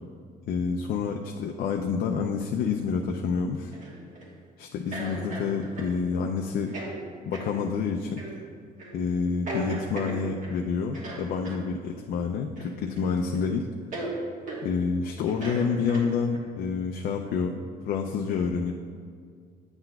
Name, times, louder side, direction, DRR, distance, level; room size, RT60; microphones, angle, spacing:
voice 1, 0.5-3.7 4.6-6.7 7.3-8.2 8.9-13.7 14.6-17.6 17.8-18.7, left 5 dB, 60° left, 3 dB, 0.4 m, -28 dB
sound 1, 3.7-4.3 4.9-6.0 6.7-6.9 7.3-7.5 8.2-8.4 8.8-9.0 9.5-10.6 10.9-11.6 12.6-13.1 13.3-13.4 13.9-14.1 14.5-14.6 15.3-16.4, right 2 dB, 50° right, 1.4 m, -37 dB
8.7 x 5.8 x 2.3 m, 2.1 s
cardioid pair, 110°, 17 cm